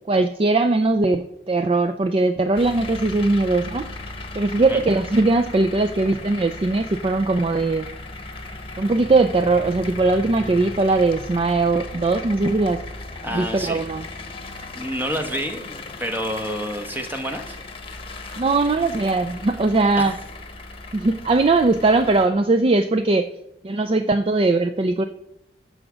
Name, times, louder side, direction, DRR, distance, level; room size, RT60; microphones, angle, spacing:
voice 1, 0.1-3.9 4.3-7.9 8.8-12.8 13.3-14.0 18.4-20.1 20.9-23.3 23.6-25.0, right 3 dB, 30° right, 8 dB, 0.4 m, -20 dB
sound 1, 2.5-22.3, left 2 dB, 30° left, 1.2 m, -37 dB
voice 2, 13.2-13.8 14.5-17.6 20.0-20.2, equal, 10° right, 5 dB, 1.2 m, -29 dB
14.0 x 4.9 x 6.2 m, 0.83 s
head